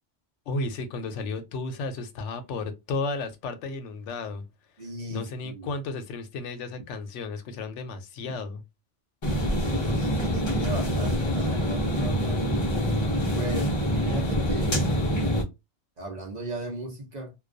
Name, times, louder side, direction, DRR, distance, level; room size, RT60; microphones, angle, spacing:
voice 1, 0.5-4.4 5.1-8.6, left 3 dB, 85° left, 0.9 m, -33 dB
voice 2, 4.8-5.7 9.9-12.7 13.3-13.7 14.0-14.8 16.0-17.3, right 1 dB, 45° right, 0.6 m, -36 dB
sound 1, 9.2-15.4, equal, 40° left, 0.4 m, -25 dB
2.3 x 2.2 x 2.4 m
omnidirectional pair, 1.2 m